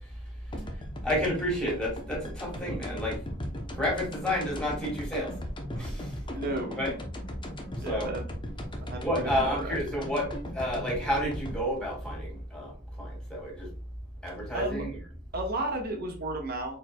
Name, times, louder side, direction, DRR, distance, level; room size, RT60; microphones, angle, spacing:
sound 1, 0.5-13.3, equal, 25° left, 0.8 m, -38 dB
voice 1, 1.0-3.2 3.8-5.3 5.8-6.1 6.8-7.0 7.8-8.1 8.9-10.3 10.5-12.7 13.0-13.7 14.2-15.0, equal, 5° left, -3 dB, 2.1 m, -30 dB
voice 2, 6.3-6.8 7.8-8.3 8.8-10.0 14.5-14.8 15.3-16.8, right 2 dB, 50° right, 2 dB, 1.2 m, -33 dB
4.4 x 4.3 x 2.2 m, 0.40 s
head